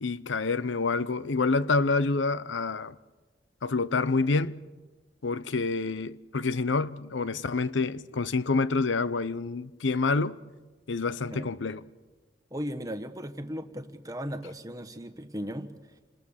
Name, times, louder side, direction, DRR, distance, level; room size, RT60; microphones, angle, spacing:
voice 1, 0.0-2.9 3.6-4.6 5.2-10.4 10.9-11.8, left 3 dB, 90° left, 0.7 m, -27 dB
voice 2, 12.5-15.7, equal, 20° right, 1.4 m, -36 dB
28.5 x 20.5 x 7.3 m
head